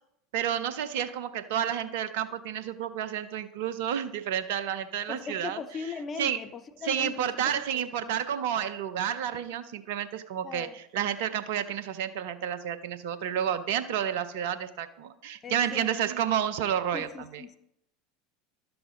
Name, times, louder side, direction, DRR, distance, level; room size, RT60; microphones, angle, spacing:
voice 1, 0.3-5.6 6.2-6.4 6.8-17.4, right 9 dB, 65° right, 11 dB, 0.7 m, -30 dB
voice 2, 5.1-8.2 10.4-10.7 15.4-16.0 16.9-17.6, left 5 dB, 30° left, 9 dB, 0.8 m, -39 dB
12.0 x 6.9 x 3.8 m, 0.78 s
hypercardioid pair, 80°, 0 cm